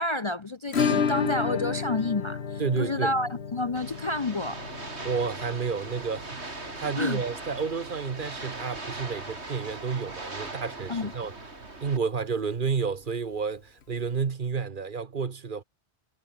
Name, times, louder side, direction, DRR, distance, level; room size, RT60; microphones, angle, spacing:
voice 1, 0.0-4.6 7.0-7.2 10.9-11.1, left 2 dB, 30° left, 0.6 m, -29 dB
Acoustic guitar / Strum, 0.7-9.3 9.6-9.7 10.0-10.1 10.4-10.5 12.6-12.7 13.8-13.9, left 6 dB, 70° left, 1.6 m, -32 dB
voice 2, 2.6-3.1 5.0-11.3 11.8-15.6, right 5 dB, 50° right, 1.2 m, -30 dB
sound 1, 3.8-12.0, right 2 dB, 75° right, 4.0 m, -40 dB
omnidirectional pair, 1.1 m